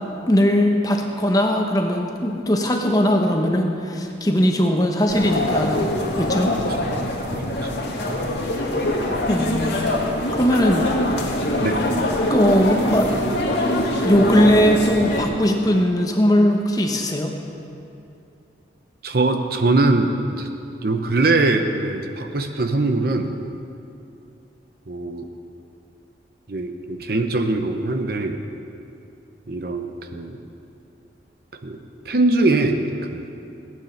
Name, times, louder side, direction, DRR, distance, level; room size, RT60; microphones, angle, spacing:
voice 1, 0.3-5.9 6.2-6.5 9.3-9.8 10.3-10.9 12.3-13.1 14.0-17.3, equal, 20° left, 2 dB, 1.0 m, -19 dB
sound 1, 5.1-15.2, left 1 dB, 80° left, 2.0 m, -23 dB
voice 2, 19.0-20.5 20.8-23.3 24.9-25.3 26.5-28.4 29.5-30.4 31.6-31.8 32.1-32.8 33.1-33.3, right 2 dB, 55° right, 6 dB, 0.8 m, -22 dB
15.5 x 9.2 x 5.8 m, 2.7 s
head